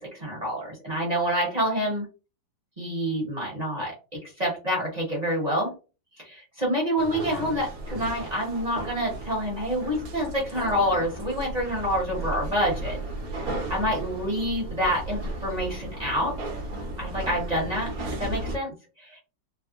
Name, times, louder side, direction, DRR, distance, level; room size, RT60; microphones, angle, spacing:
voice 1, 0.0-2.1 2.8-3.9 4.2-5.7 6.2-13.0 13.7-16.4 17.0-17.9 18.2-19.2, equal, 30° right, -3 dB, 0.8 m, -27 dB
sound 1, 7.0-18.6, right 1 dB, 60° right, 1.1 m, -35 dB
3.4 x 2.1 x 2.4 m, 0.31 s
omnidirectional pair, 2.0 m